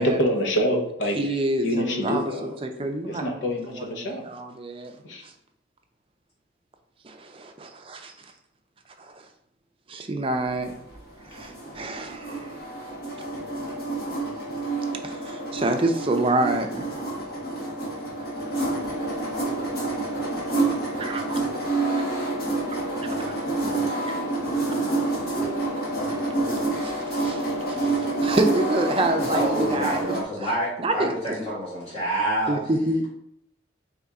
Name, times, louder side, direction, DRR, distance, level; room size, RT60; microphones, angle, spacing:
voice 1, 0.0-2.5 3.1-4.4 5.0-5.2, equal, 70° left, 2 dB, 0.9 m, -26 dB
voice 2, 1.2-3.2 3.7-4.9 7.0-8.1 9.9-10.7 11.3-12.5 15.0-17.0 21.0-21.4 26.8-27.4 27.7-30.5 30.8-31.3 32.5-33.0, right 2 dB, 30° right, 4 dB, 0.5 m, -27 dB
sound 1, 10.5-30.2, right 2 dB, 50° left, 1.3 m, -28 dB
voice 3, 29.2-31.0 31.4-32.6, right 1 dB, 30° left, -9 dB, 1.9 m, -27 dB
4.2 x 3.5 x 3.6 m, 0.74 s
head